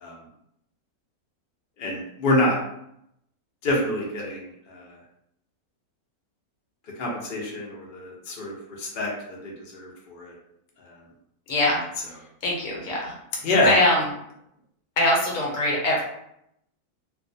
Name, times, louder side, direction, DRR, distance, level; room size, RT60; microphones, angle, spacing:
voice 1, 1.8-2.6 3.6-5.0 7.0-10.4 10.9-11.0 13.4-13.7, left 1 dB, 90° left, -2 dB, 0.4 m, -26 dB
voice 2, 11.5-11.8 12.4-13.1 13.6-14.1 15.0-16.0, left 1 dB, 60° left, -3 dB, 1.1 m, -22 dB
2.4 x 2.2 x 2.6 m, 0.77 s
omnidirectional pair, 1.6 m